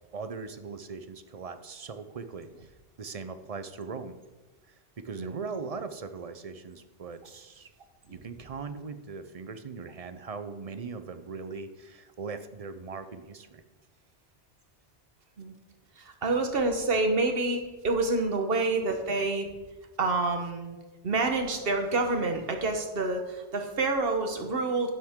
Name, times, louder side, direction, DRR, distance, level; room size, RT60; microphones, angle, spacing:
voice 1, 0.1-2.7 3.0-4.2 4.7-7.7 8.1-13.6, right 4 dB, 40° right, 10 dB, 0.6 m, -40 dB
voice 2, 16.0-19.5 20.0-20.8 21.0-24.9, right 3 dB, 55° right, 5 dB, 1.4 m, -28 dB
11.5 x 9.4 x 3.7 m, 1.2 s
omnidirectional pair, 1.2 m